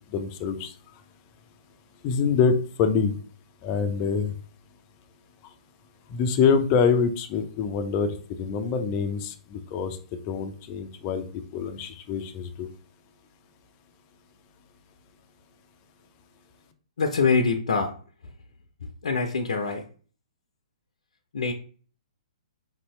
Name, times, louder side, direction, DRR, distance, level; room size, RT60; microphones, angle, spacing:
voice 1, 0.1-0.7 2.0-3.1 3.6-4.3 6.1-9.3 9.7-10.0 10.3-11.2 11.5-12.7, left 6 dB, 30° left, 7 dB, 0.5 m, -25 dB
voice 2, 17.0-17.9 18.2-18.3 19.0-19.8 21.3-21.5, left 4 dB, 75° left, 3 dB, 0.6 m, -24 dB
5.1 x 2.8 x 3.1 m, 0.42 s
hypercardioid pair, 135°, 4 cm